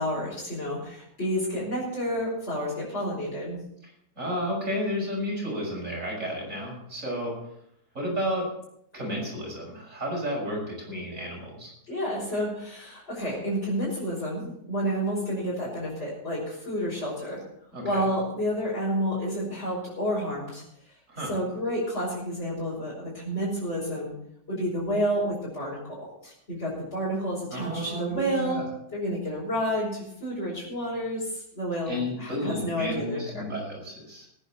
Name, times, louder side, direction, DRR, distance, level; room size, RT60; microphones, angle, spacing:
voice 1, 0.0-3.6 11.9-17.4 17.8-20.6 21.2-24.1 24.5-26.0 26.2-28.6 28.9-33.5, equal, 40° left, -8 dB, 5.8 m, -30 dB
voice 2, 4.2-7.3 7.9-8.5 8.9-11.7 17.7-18.1 21.1-21.3 27.5-28.6 31.9-34.3, equal, 50° right, -2 dB, 6.5 m, -32 dB
20.0 x 10.0 x 4.4 m, 0.74 s
omnidirectional pair, 1.7 m